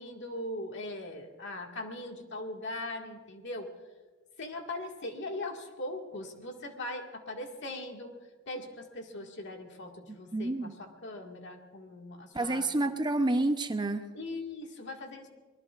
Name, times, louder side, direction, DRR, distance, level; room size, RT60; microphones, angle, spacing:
voice 1, 0.0-3.7 4.4-8.2 8.5-12.7 14.1-15.3, left 2 dB, 60° left, 2 dB, 2.0 m, -40 dB
voice 2, 10.1-10.7 12.3-14.1, right 2 dB, 20° right, 8 dB, 0.7 m, -29 dB
25.5 x 20.5 x 2.5 m, 1.4 s
head